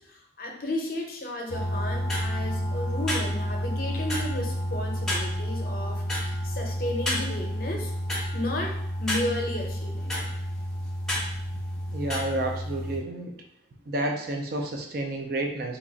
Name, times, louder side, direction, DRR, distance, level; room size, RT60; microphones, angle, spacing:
voice 1, 0.0-7.9 8.3-10.3, left 1 dB, 50° left, 1 dB, 0.6 m, -33 dB
sound 1, 1.5-13.0, equal, ahead, 0.6 m, -30 dB
voice 2, 11.9-13.3 13.9-15.8, right 1 dB, 50° right, 3 dB, 0.5 m, -30 dB
2.9 x 2.4 x 3.9 m, 0.74 s
head